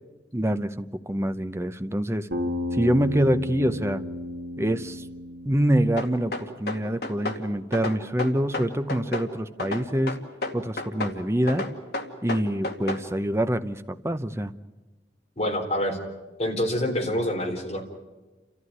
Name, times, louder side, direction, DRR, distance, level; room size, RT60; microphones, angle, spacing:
voice 1, 0.3-2.3 2.7-4.0 4.6-5.0 5.5-10.2 10.5-11.6 12.2-14.5, right 1 dB, 15° right, 10 dB, 0.7 m, -25 dB
Bass guitar, 2.3-6.6, left 1 dB, 75° right, 2.4 m, -33 dB
sound 1, 6.0-7.4 7.7-9.3 9.6-11.2 11.5-13.0, left 2 dB, 60° left, 2.3 m, -31 dB
voice 2, 15.4-16.0 16.4-17.8, left 1 dB, 35° left, 1 dB, 4.0 m, -26 dB
29.5 x 14.5 x 9.5 m, 1.2 s
head